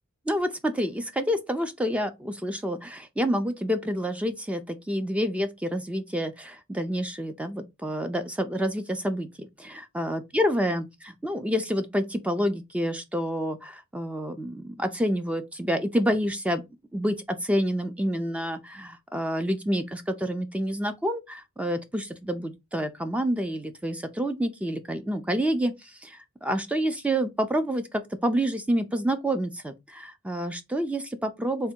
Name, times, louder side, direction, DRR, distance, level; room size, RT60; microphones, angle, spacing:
voice 1, 0.3-16.6 16.9-31.7, equal, 5° right, 0.3 m, -28 dB
3.4 x 2.2 x 4.3 m
head